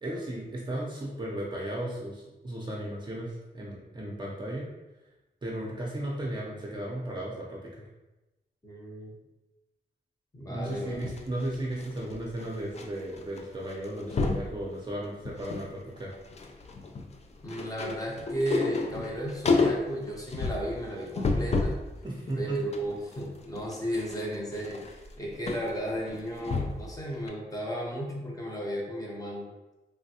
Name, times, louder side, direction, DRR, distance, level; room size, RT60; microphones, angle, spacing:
voice 1, 0.0-4.7 5.4-7.9 10.5-16.1 22.0-22.6, right 1 dB, 25° right, -5 dB, 0.6 m, -35 dB
voice 2, 8.6-9.2 10.3-11.0 17.4-21.7 22.4-29.5, equal, 20° left, -2 dB, 0.7 m, -34 dB
sound 1, 10.7-12.9 13.1-13.4 13.7-14.5 15.0-15.7 16.0-21.9 22.3-26.9 27.3-27.4, left 3 dB, 40° left, 0.4 m, -31 dB
3.2 x 2.2 x 2.7 m, 1.1 s
cardioid pair, 80°, 18 cm